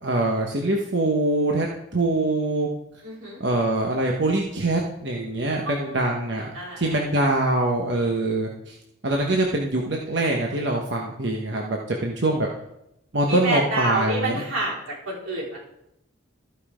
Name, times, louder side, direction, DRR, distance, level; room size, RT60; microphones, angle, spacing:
voice 1, 0.0-1.7 1.9-2.7 3.4-6.5 6.8-8.8 9.0-12.5 13.1-14.4, right 2 dB, 55° right, 0 dB, 1.1 m, -24 dB
voice 2, 3.0-3.4 5.6-6.0 6.5-7.0 13.3-15.6, right 1 dB, 90° right, -5 dB, 4.4 m, -28 dB
14.5 x 5.5 x 5.0 m, 0.84 s
head